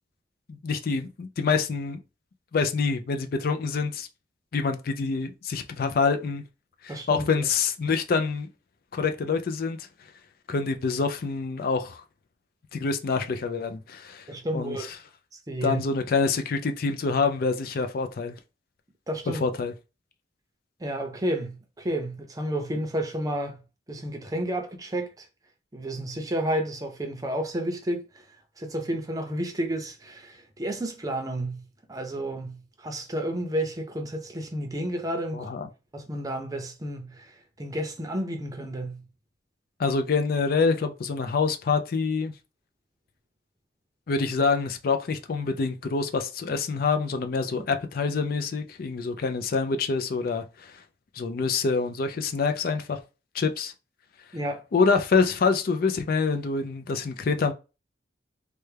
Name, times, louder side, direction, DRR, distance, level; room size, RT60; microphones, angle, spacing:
voice 1, 0.5-2.0 2.5-4.1 4.5-6.4 6.8-8.5 8.9-9.9 10.5-12.0 12.7-14.2 14.5-14.8 15.6-18.4 19.4-19.7 35.3-35.7 39.8-42.3 44.1-50.8 51.2-53.0 53.3-53.7 54.7-57.5, left 4 dB, 55° left, 0.4 m, -26 dB
voice 2, 6.9-7.4 14.3-14.9 15.5-15.8 19.1-19.4 20.8-23.6 23.9-25.3 25.7-28.2 28.6-31.6 31.9-35.5 35.9-39.0 47.6-47.7 54.3-54.6, right 1 dB, 20° right, 0.6 m, -31 dB
3.3 x 2.2 x 3.2 m
head